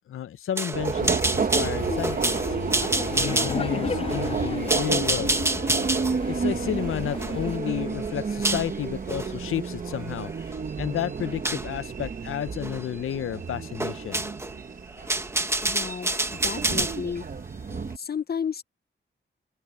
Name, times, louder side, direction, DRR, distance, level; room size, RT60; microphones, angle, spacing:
voice 1, 0.1-2.4 3.1-5.3 6.3-10.3 10.8-14.2, left 10 dB, 90° left, 0.6 m, -31 dB
sound 1, 0.6-8.7 9.1-9.3 9.9-10.6 11.4-11.7 12.6-12.9 13.1-13.2 13.8-14.5 14.9-17.0, right 1 dB, 10° right, 1.3 m, -28 dB
Subway metro underground, 0.7-18.0, right 5 dB, 40° right, 1.1 m, -31 dB
Laughter, 1.8-7.6, left 6 dB, 30° left, 0.3 m, -34 dB
voice 2, 15.6-17.3 17.7-18.6, left 7 dB, 50° left, 0.8 m, -33 dB
open air
wide cardioid pair, 110°, 21 cm